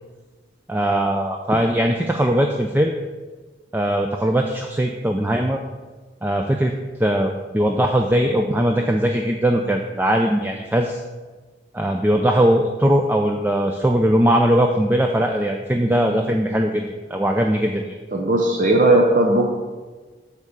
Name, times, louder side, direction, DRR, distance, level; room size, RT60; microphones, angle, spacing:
voice 1, 0.7-2.9 3.7-5.6 6.2-6.7 7.0-11.0 11.7-16.9 17.1-18.0, right 1 dB, 10° right, 3 dB, 0.3 m, -20 dB
voice 2, 18.1-19.5, right 2 dB, 45° right, 2 dB, 0.6 m, -17 dB
8.2 x 3.7 x 6.6 m, 1.3 s
head